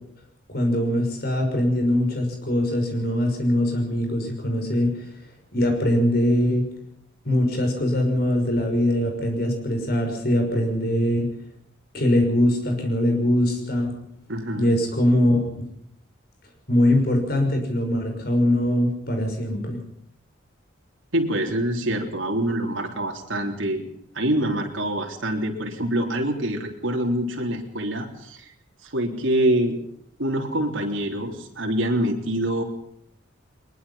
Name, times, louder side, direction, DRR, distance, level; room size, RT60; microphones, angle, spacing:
voice 1, 0.5-4.9 5.5-6.7 7.2-11.3 11.9-13.9 14.5-15.4 16.7-19.8, left 1 dB, 50° left, 4 dB, 5.9 m, -22 dB
voice 2, 14.3-14.7 21.1-23.8 24.2-28.4 28.8-29.8 30.2-32.6, right 1 dB, 80° right, 1 dB, 3.7 m, -25 dB
22.0 x 21.5 x 5.8 m, 0.69 s
head